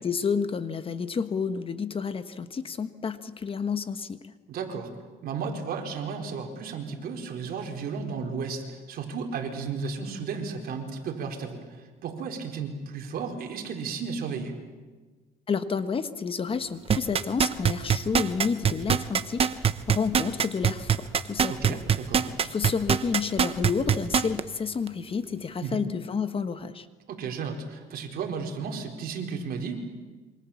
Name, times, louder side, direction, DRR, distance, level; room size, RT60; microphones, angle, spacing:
voice 1, 0.0-4.3 15.5-21.8 22.4-26.9, left 5 dB, 35° left, 11 dB, 1.3 m, -30 dB
voice 2, 4.5-4.9 5.2-14.6 21.5-22.3 25.6-25.8 27.1-29.8, right 5 dB, 60° right, 2 dB, 4.4 m, -34 dB
sound 1, 16.9-24.4 24.9-25.0, right 7 dB, 35° right, 1.0 m, -22 dB
27.5 x 25.0 x 7.3 m, 1.3 s
cardioid pair, 110°, 17 cm